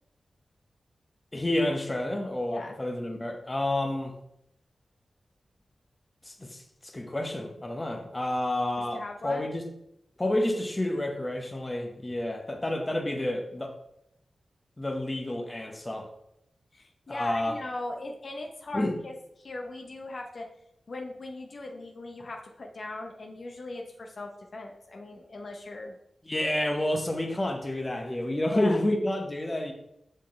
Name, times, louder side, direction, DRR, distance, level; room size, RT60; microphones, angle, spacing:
voice 1, 1.3-4.1 6.3-9.6 10.2-13.7 14.8-16.1 17.1-17.6 18.7-19.0 26.2-29.7, left 1 dB, 25° left, 3 dB, 1.0 m, -29 dB
voice 2, 8.9-9.5 16.7-20.5 20.9-26.0 28.5-28.8, left 2 dB, 60° left, 2 dB, 0.8 m, -39 dB
6.4 x 5.9 x 3.2 m, 0.78 s
wide cardioid pair, 75°, 0 cm